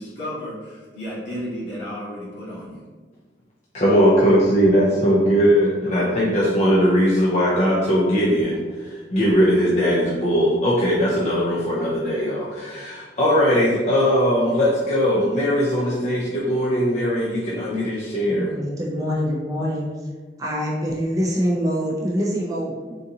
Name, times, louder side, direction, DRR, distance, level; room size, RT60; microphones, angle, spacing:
voice 1, 0.0-2.8, equal, 80° left, -7 dB, 1.3 m, -33 dB
voice 2, 3.7-18.5, equal, 40° left, -6 dB, 0.5 m, -19 dB
voice 3, 18.3-19.9 20.4-23.0, equal, 20° right, -3 dB, 0.5 m, -25 dB
3.8 x 2.5 x 2.8 m, 1.4 s
head